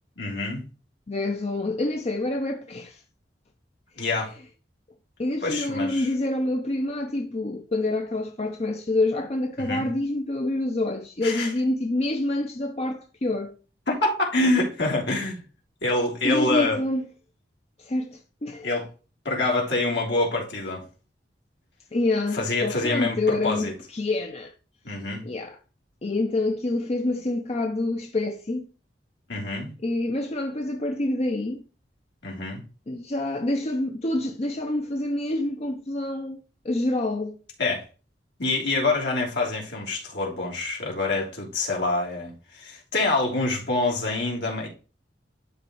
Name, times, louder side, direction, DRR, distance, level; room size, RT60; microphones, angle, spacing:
voice 1, 0.2-0.6 4.0-4.3 5.4-6.1 9.6-9.9 11.2-11.5 13.9-15.4 15.8-16.8 18.6-18.9 19.3-20.8 22.3-23.7 24.8-25.2 29.3-29.7 32.2-32.6 37.6-37.9 38.4-44.7, left 2 dB, 80° left, 3.4 m, -26 dB
voice 2, 1.1-3.0 5.2-13.5 16.2-17.0 17.8-18.7 21.9-24.5 25.2-25.6 26.0-28.7 29.8-31.6 32.9-37.4, left 2 dB, 35° left, 0.7 m, -27 dB
12.0 x 4.1 x 3.1 m
head